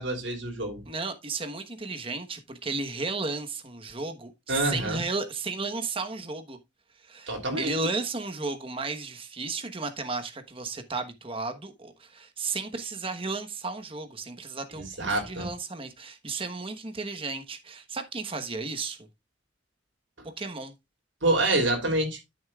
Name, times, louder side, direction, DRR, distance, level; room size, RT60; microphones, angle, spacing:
voice 1, 0.0-0.8 4.5-5.0 7.3-7.7 14.8-15.5 21.2-22.2, right 2 dB, 80° right, 3.3 m, -27 dB
voice 2, 0.9-6.6 7.0-19.1 20.4-20.7, right 3 dB, 30° right, 1.2 m, -34 dB
12.5 x 7.2 x 2.4 m
head